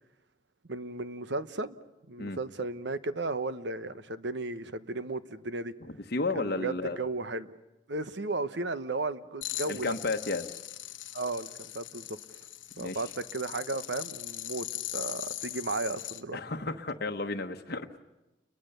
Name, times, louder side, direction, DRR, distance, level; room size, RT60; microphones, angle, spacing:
voice 1, 0.7-1.8 2.1-5.7 6.3-7.5 7.9-9.9 11.1-12.1 12.8-16.4, right 3 dB, 65° right, 12 dB, 1.1 m, -34 dB
voice 2, 5.8-7.0 9.7-10.5 12.8-13.0 16.3-17.9, left 3 dB, 55° left, 5 dB, 1.1 m, -32 dB
sound 1, 9.4-16.2, left 14 dB, 90° left, 1.2 m, -40 dB
30.0 x 22.5 x 6.8 m, 1.0 s
head